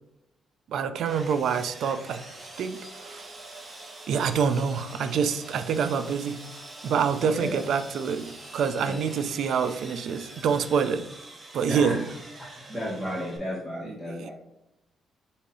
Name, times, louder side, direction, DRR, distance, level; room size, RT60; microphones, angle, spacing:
voice 1, 0.7-2.2 2.6-3.3 4.1-6.5 6.8-11.1 11.5-12.1 13.8-14.3, right 6 dB, 70° right, 0.3 m, -27 dB
Sawing, 1.1-13.4, right 2 dB, 30° right, 1.0 m, -44 dB
voice 2, 7.2-7.6 8.8-8.9 11.7-12.0 12.7-14.3, equal, 10° right, 1.2 m, -33 dB
6.1 x 2.7 x 2.6 m
cardioid pair, 90°, 0 cm